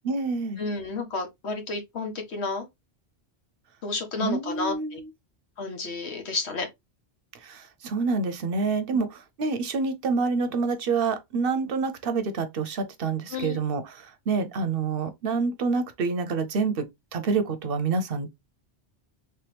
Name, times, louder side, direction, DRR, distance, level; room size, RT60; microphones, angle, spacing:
voice 1, 0.0-0.6 4.2-5.1 7.3-16.9 17.1-18.3, right 4 dB, 65° right, 0.8 m, -27 dB
voice 2, 0.6-2.7 3.8-5.0 5.6-6.7 13.3-13.6, left 3 dB, 80° left, 1.3 m, -31 dB
3.3 x 2.9 x 3.2 m
omnidirectional pair, 1.1 m